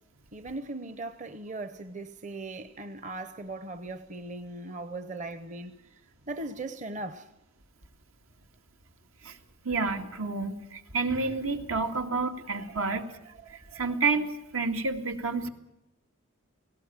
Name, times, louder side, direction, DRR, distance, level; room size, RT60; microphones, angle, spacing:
voice 1, 0.3-5.7 6.3-7.3, right 2 dB, 35° right, 0.8 m, -38 dB
voice 2, 9.6-13.1 13.5-15.5, right 4 dB, 85° right, 2.1 m, -29 dB
18.5 x 17.0 x 8.8 m
head